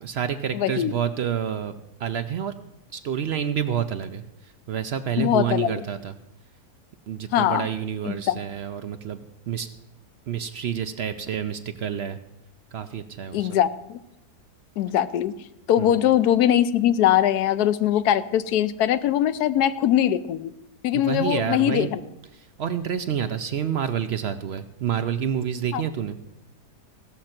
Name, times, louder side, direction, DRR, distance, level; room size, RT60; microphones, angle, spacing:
voice 1, 0.0-1.7 2.0-2.5 2.9-4.2 4.7-6.1 7.1-9.7 10.3-12.2 12.7-13.5 15.8-16.1 20.9-21.9 22.3-26.2, right 8 dB, 65° right, 9 dB, 0.6 m, -28 dB
voice 2, 0.5-1.0 5.2-5.8 7.3-7.7 8.0-8.4 13.3-14.0 14.8-15.3 15.7-20.5 20.8-22.0 25.7-25.8, left 11 dB, 80° left, 13 dB, 1.1 m, -21 dB
16.5 x 6.5 x 5.8 m, 0.89 s
omnidirectional pair, 1.7 m